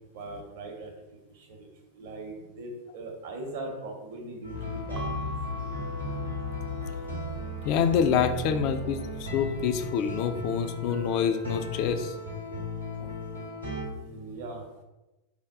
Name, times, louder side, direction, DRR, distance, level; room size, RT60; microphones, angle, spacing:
voice 1, 0.1-0.9 1.3-1.7 2.0-5.3 13.9-14.6, right 2 dB, 55° right, 2 dB, 0.7 m, -40 dB
sound 1, 4.4-13.9, left 1 dB, 85° right, 0.8 m, -36 dB
sound 2, 4.5-9.6, left 4 dB, 65° left, 0.7 m, -40 dB
Keyboard (musical) / Bell, 4.9-7.4, left 1 dB, 25° right, 0.5 m, -42 dB
voice 2, 7.6-12.1 13.0-13.1, left 7 dB, 45° left, 9 dB, 0.3 m, -27 dB
3.4 x 2.3 x 3.5 m, 1.0 s
figure-of-eight pair, 90°, 0 cm